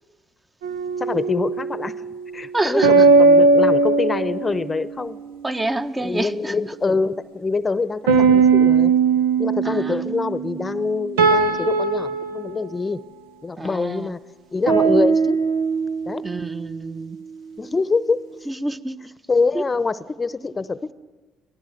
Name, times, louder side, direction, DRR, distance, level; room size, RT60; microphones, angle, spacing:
sound 1, 0.6-1.9 2.8-4.9 8.1-12.5 14.7-16.5, right 4 dB, 85° right, 1.1 m, -18 dB
voice 1, 1.0-2.0 2.3-5.2 6.0-8.9 9.4-13.0 13.4-14.2 14.5-15.4 16.1-16.2 17.6-18.5 19.3-20.9, left 4 dB, 30° left, 15 dB, 0.8 m, -25 dB
voice 2, 2.5-3.1 5.4-6.5 9.6-10.1 13.6-14.1 16.2-17.2 18.5-19.0 19.5-19.6, right 2 dB, 20° right, 9 dB, 1.1 m, -27 dB
25.0 x 17.5 x 8.0 m, 1.3 s
hypercardioid pair, 55°, 0 cm